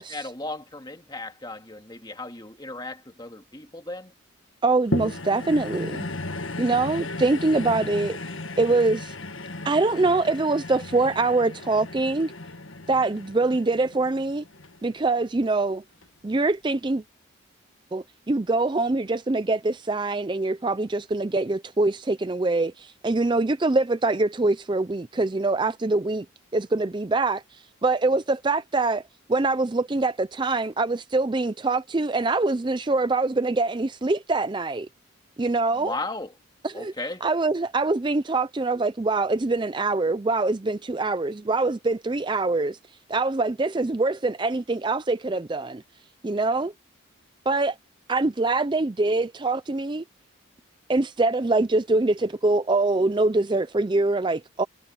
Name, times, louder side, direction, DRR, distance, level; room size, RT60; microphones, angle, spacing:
voice 1, 0.0-4.1 35.8-36.3 36.7-37.2, left 2 dB, 20° left, 2.4 m, -36 dB
voice 2, 4.6-6.1 6.6-8.2 8.6-9.1 9.6-12.3 12.9-14.4 14.8-15.8 16.2-17.0 17.9-26.3 26.5-29.0 29.3-34.9 35.4-35.9 36.6-36.9 37.2-42.8 43.1-45.8 46.2-46.7 47.5-47.8 48.1-50.0 50.9-54.6, right 3 dB, 20° right, 0.4 m, -24 dB
sound 1, 4.9-15.4 16.0-16.1, left 2 dB, 70° left, 1.7 m, -35 dB
head